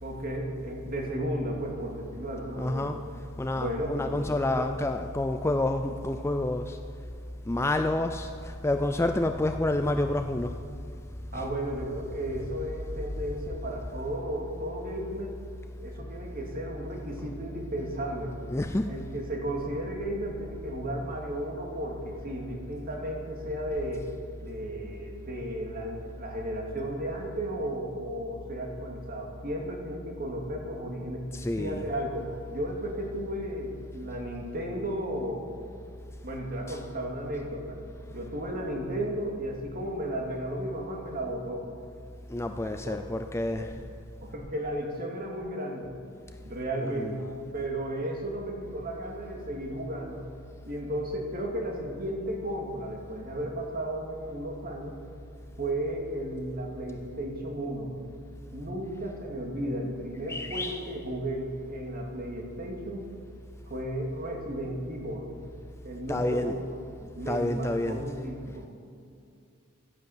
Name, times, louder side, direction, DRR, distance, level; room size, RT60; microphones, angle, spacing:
voice 1, 0.0-2.9 3.6-4.2 4.5-4.7 11.3-15.4 15.8-18.4 18.9-24.1 24.4-31.3 31.6-35.5 36.2-37.8 38.1-41.7 42.6-43.0 43.6-43.7 44.2-45.9 46.4-50.3 50.7-55.0 55.6-57.9 58.5-63.1 63.7-65.3 65.8-66.8 67.1-68.7, right 1 dB, 40° right, 0 dB, 2.4 m, -34 dB
voice 2, 2.6-3.0 3.4-6.8 7.5-10.6 11.3-11.5 18.5-18.9 31.3-31.8 36.7-36.8 42.3-43.7 46.8-47.3 60.3-60.9 66.1-66.6 67.3-68.0, left 1 dB, 10° left, 7 dB, 0.4 m, -29 dB
13.5 x 10.0 x 8.0 m, 2.4 s
head